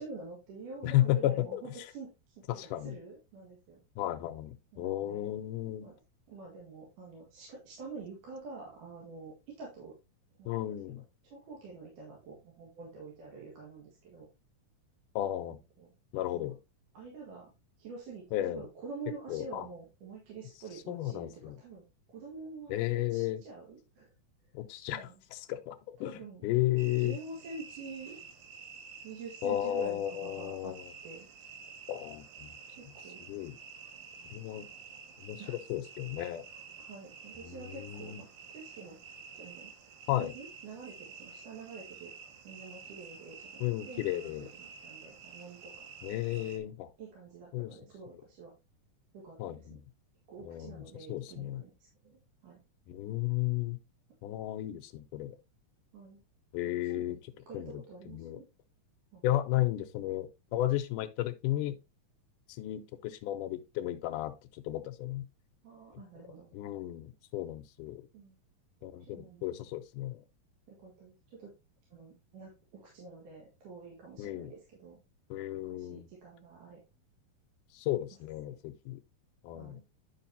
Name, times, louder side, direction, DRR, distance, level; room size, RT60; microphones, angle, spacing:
voice 1, 0.0-2.1 2.8-3.8 4.7-5.3 5.8-6.0 6.3-9.9 10.4-10.9 11.2-14.3 15.4-15.9 16.3-16.5 16.9-17.5 17.8-21.8 22.1-24.1 24.9-25.2 26.0-26.4 27.0-28.2 29.0-30.7 31.0-31.3 32.7-33.2 35.4-35.6 36.8-39.0 39.3-39.7 40.2-42.1 42.4-45.9 46.3-46.7 47.0-48.5 49.1-49.8 50.3-51.7 52.0-52.6 55.9-56.2 56.8-57.2 57.5-58.5 59.1-59.2 65.6-66.5 68.1-68.4 69.0-69.5 70.7-71.5 71.9-75.0 75.8-76.8 79.5-79.8, right 4 dB, 70° right, 3.3 m, -47 dB
voice 2, 0.8-1.9 2.5-3.0 4.0-5.9 10.5-11.0 15.2-15.6 16.1-16.6 18.3-18.6 19.3-19.6 20.9-21.6 22.7-23.4 24.5-27.2 29.4-30.9 31.9-32.5 33.3-33.6 34.3-34.7 35.2-36.4 37.4-38.2 40.1-40.3 43.6-44.5 46.0-46.9 47.5-47.8 49.4-49.8 50.4-50.8 51.1-51.6 52.9-53.8 54.2-55.4 56.5-57.2 57.5-57.8 58.1-58.4 59.2-61.8 62.5-64.3 64.7-65.3 66.5-68.0 68.8-70.2 74.2-74.5 75.3-76.1 77.7-79.0 79.4-79.8, left 14 dB, 80° left, 2.1 m, -33 dB
sound 1, 26.8-46.6, right 6 dB, 90° right, 2.8 m, -50 dB
10.0 x 5.4 x 2.8 m
omnidirectional pair, 3.9 m